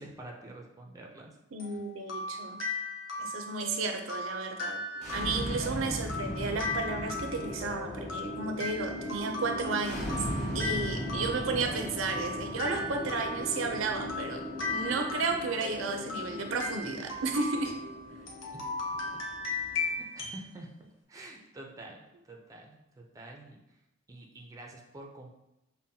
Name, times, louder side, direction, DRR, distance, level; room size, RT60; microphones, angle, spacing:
voice 1, 0.0-1.3 10.9-11.0 18.3-18.4 20.0-20.7 21.1-23.6 24.1-25.3, right 1 dB, 15° right, 1 dB, 0.4 m, -47 dB
voice 2, 1.5-2.6 3.2-4.8 5.1-10.2 10.5-17.7, right 3 dB, 80° right, 5 dB, 0.5 m, -33 dB
sound 1, 1.6-20.5, left 3 dB, 75° left, 0.7 m, -38 dB
sound 2, 4.9-19.9, equal, 35° left, 0.9 m, -38 dB
5.5 x 2.1 x 2.7 m, 0.92 s
head